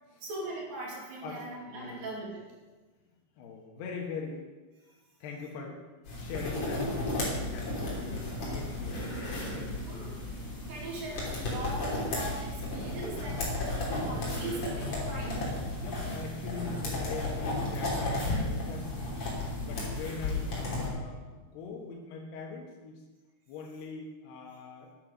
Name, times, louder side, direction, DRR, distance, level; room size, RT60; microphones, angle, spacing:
voice 1, 0.2-2.5 4.9-5.0 9.4-10.2 10.7-15.4 19.6-19.9, right 2 dB, 60° right, -3 dB, 4.4 m, -40 dB
voice 2, 1.2-2.1 3.4-4.4 5.2-5.8 6.2-9.1 9.5-9.9 14.9-15.0 15.8-19.1 19.6-23.0 23.5-24.9, left 4 dB, 85° left, -1 dB, 3.4 m, -42 dB
sound 1, 6.1-20.9, left 2 dB, 45° left, 4.2 m, -34 dB
12.0 x 9.8 x 5.3 m, 1.2 s
omnidirectional pair, 4.6 m